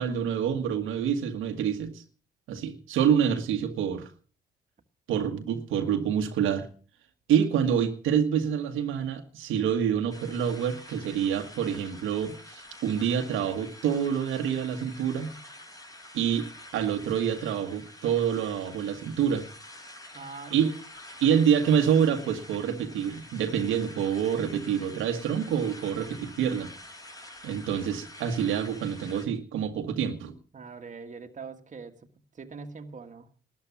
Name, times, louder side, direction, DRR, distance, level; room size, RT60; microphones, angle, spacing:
voice 1, 0.0-2.0 2.5-4.1 5.1-6.7 7.3-15.3 16.1-16.5 16.7-19.4 20.5-20.7 21.2-26.7 27.4-30.3, right 8 dB, 90° right, 1.7 m, -27 dB
sound 1, 10.1-29.3, left 1 dB, 15° left, 4.8 m, -47 dB
voice 2, 11.7-12.1 20.1-20.7 21.3-21.4 30.5-32.1 32.3-33.3, right 4 dB, 40° right, 1.8 m, -43 dB
13.0 x 10.5 x 7.1 m
cardioid pair, 90°, 20 cm